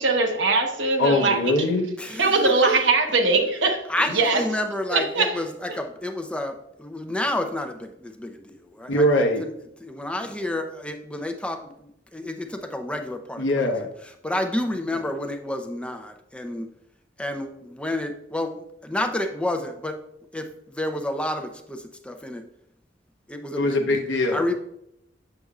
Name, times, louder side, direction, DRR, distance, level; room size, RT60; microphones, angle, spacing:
voice 1, 0.0-1.6 2.2-4.4 4.9-5.4, right 3 dB, 80° right, 3 dB, 1.1 m, -21 dB
voice 2, 1.0-1.9 8.9-9.4 13.4-13.9 23.6-24.5, left 1 dB, 80° left, 2 dB, 0.8 m, -22 dB
voice 3, 2.0-2.8 3.9-9.1 9.4-9.5 9.8-13.7 14.2-16.7 17.2-18.5 18.8-20.0 20.3-20.5 20.7-22.4 23.3-23.9 24.3-24.5, left 1 dB, 5° left, 6 dB, 0.6 m, -30 dB
7.7 x 6.7 x 2.4 m, 0.79 s
head